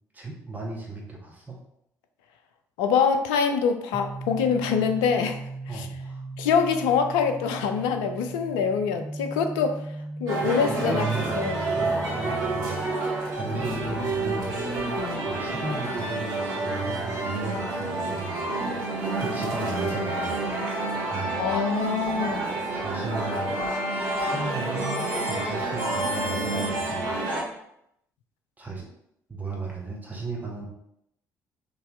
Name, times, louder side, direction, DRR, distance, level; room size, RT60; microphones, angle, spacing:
voice 1, 0.1-1.6 5.7-6.2 10.8-12.9 13.4-14.6 15.2-18.5 19.2-20.4 21.1-21.5 22.7-23.6 24.2-27.1 28.6-28.9 29.3-30.7, right 3 dB, 20° right, -2 dB, 0.9 m, -35 dB
voice 2, 2.8-5.9 6.4-9.8 10.2-11.1 11.4-11.7 15.0-15.2 21.4-22.4, left 6 dB, 65° left, 7 dB, 0.4 m, -25 dB
sound 1, 3.9-17.6, right 2 dB, ahead, 0.5 m, -39 dB
sound 2, 10.3-27.4, right 2 dB, 55° right, 1.2 m, -28 dB
3.9 x 2.6 x 2.5 m, 0.75 s
figure-of-eight pair, 50°, 9 cm